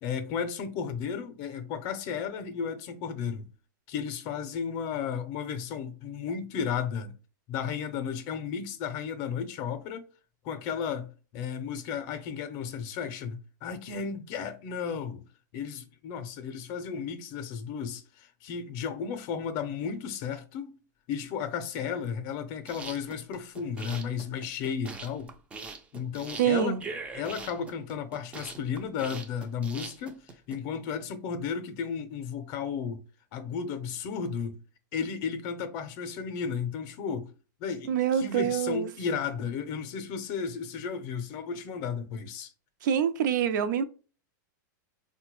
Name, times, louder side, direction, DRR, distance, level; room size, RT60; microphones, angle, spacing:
voice 1, 0.0-3.5 3.9-7.2 7.5-10.1 10.4-15.2 15.5-20.8 21.1-25.3 25.9-26.8 27.1-30.2 30.5-33.0 33.3-34.6 34.9-37.3 37.6-42.5, left 6 dB, 40° left, 0.5 m, -34 dB
sound 1, 22.5-30.6, right 4 dB, 10° right, 0.3 m, -42 dB
voice 2, 26.4-26.8 37.9-38.9 42.8-43.8, right 9 dB, 70° right, 0.5 m, -25 dB
3.9 x 2.2 x 3.0 m
supercardioid pair, 145°, 10 cm